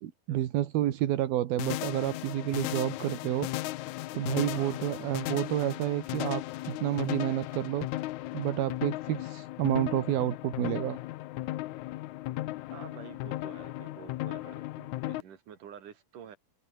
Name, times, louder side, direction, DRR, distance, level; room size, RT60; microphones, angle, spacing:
voice 1, 0.3-3.5 4.1-7.9 8.3-11.0, right 13 dB, 80° right, 3.3 m, -29 dB
sound 1, 1.6-15.2, left 17 dB, 85° left, 1.6 m, -36 dB
voice 2, 4.5-4.9 12.7-16.4, right 8 dB, 60° right, 4.3 m, -49 dB
open air
omnidirectional pair, 4.3 m